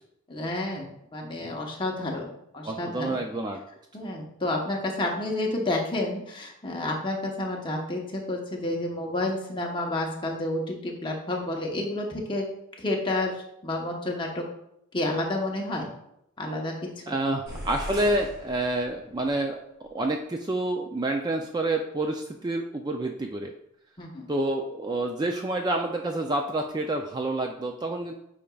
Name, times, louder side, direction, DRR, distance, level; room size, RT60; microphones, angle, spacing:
voice 1, 0.3-0.9 1.1-3.2 3.9-12.4 12.8-14.4 14.9-15.9 16.4-17.1 24.0-24.3, left 2 dB, 20° left, -1 dB, 1.0 m, -30 dB
voice 2, 2.6-3.6 17.1-23.5 24.3-28.1, right 2 dB, 20° right, 3 dB, 0.3 m, -28 dB
sound 1, 17.5-19.3, equal, 35° right, 2.5 m, -39 dB
8.5 x 5.0 x 2.3 m, 0.78 s
head